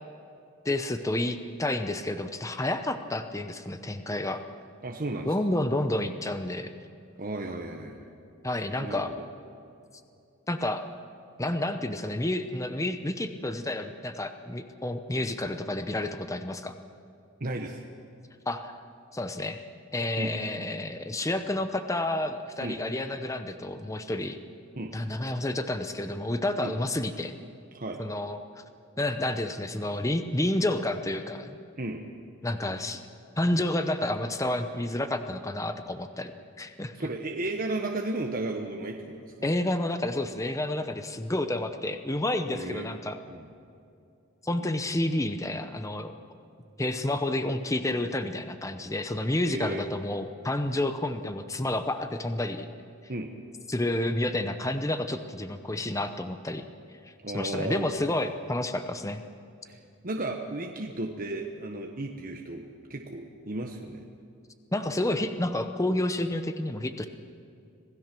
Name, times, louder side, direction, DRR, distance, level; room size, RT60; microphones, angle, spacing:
voice 1, 0.6-4.4 5.2-6.7 8.4-9.1 10.5-10.8 11.4-16.7 18.5-18.8 19.1-19.6 19.9-24.4 24.9-27.3 28.0-28.6 29.0-31.6 32.4-33.0 33.4-36.9 39.4-43.2 44.4-46.1 46.8-52.7 53.7-56.6 57.0-59.2 64.7-67.1, left 1 dB, 15° left, 8 dB, 0.8 m, -30 dB
voice 2, 4.8-5.3 7.2-8.1 8.8-9.2 17.4-17.8 20.2-20.3 22.6-22.8 24.8-24.9 26.6-26.7 27.7-28.0 31.8-32.0 36.9-39.5 42.5-42.9 43.3-43.5 49.5-49.8 53.1-53.3 57.2-57.9 59.6-59.8 60.0-62.6 62.9-64.0, right 2 dB, 40° right, 1 dB, 1.2 m, -34 dB
26.5 x 17.0 x 6.1 m, 2.5 s
head